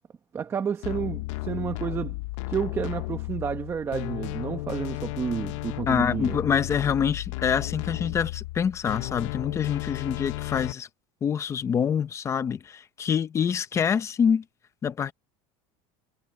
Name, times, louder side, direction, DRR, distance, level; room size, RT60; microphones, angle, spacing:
voice 1, 0.3-2.1 2.5-6.4, right 7 dB, 15° right, 1.0 m, -30 dB
sound 1, 0.8-10.7, left 19 dB, 80° left, 0.7 m, -34 dB
voice 2, 5.9-10.9 11.2-14.4 14.8-15.1, left 7 dB, 20° left, 0.6 m, -26 dB
cardioid pair, 175°, 16 cm